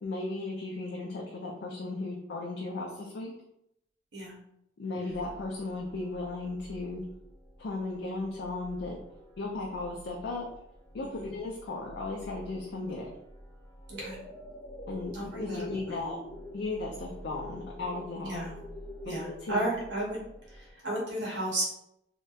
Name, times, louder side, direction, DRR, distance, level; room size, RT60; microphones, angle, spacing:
voice 1, 0.0-3.3 4.8-7.0 7.6-9.0 9.4-10.5 10.9-13.1 14.9-16.2 16.5-18.4 19.0-19.6, left 2 dB, 65° left, -2 dB, 0.4 m, -36 dB
sound 1, 5.1-20.7, equal, 30° right, 0.7 m, -51 dB
sound 2, 13.9-19.2, left 1 dB, 40° left, 0.7 m, -46 dB
voice 2, 13.9-14.2 15.1-16.2 18.2-18.5 19.0-20.2 20.5-21.6, right 1 dB, 75° right, -3 dB, 0.7 m, -34 dB
2.8 x 2.1 x 2.3 m, 0.78 s
head